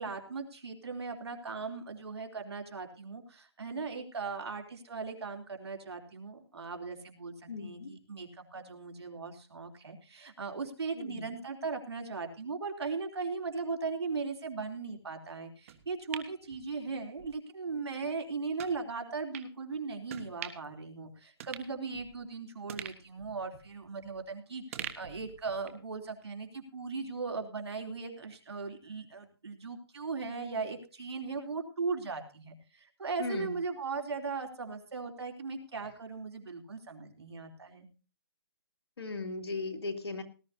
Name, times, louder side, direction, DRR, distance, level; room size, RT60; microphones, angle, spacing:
voice 1, 0.0-37.9, right 4 dB, 85° right, 3 dB, 3.3 m, -38 dB
voice 2, 7.5-7.9 10.9-11.4 33.2-33.5 39.0-40.2, left 3 dB, 80° left, 4 dB, 2.5 m, -37 dB
sound 1, 15.7-17.3 17.7-17.8 18.6-18.8 19.3-19.5 20.1-20.8 21.1-21.2 21.4-22.3 22.7-24.3 24.7-25.9 26.2-26.3, right 9 dB, 35° right, 1.4 m, -45 dB
19.0 x 12.5 x 2.7 m, 0.35 s
hypercardioid pair, 165°, 13 cm